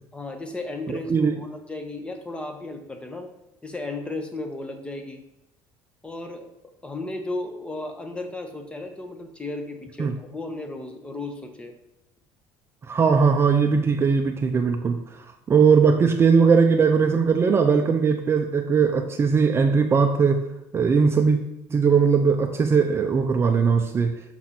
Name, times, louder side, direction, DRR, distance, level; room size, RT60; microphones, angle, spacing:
voice 1, 0.1-3.3 3.6-5.2 6.0-6.5 6.8-11.7, left 2 dB, 10° left, 6 dB, 0.9 m, -34 dB
voice 2, 12.9-15.0 15.5-20.4 20.7-21.4 21.7-24.1, right 5 dB, 30° right, 5 dB, 0.5 m, -19 dB
6.2 x 4.3 x 4.2 m, 0.84 s
supercardioid pair, 105°, 9 cm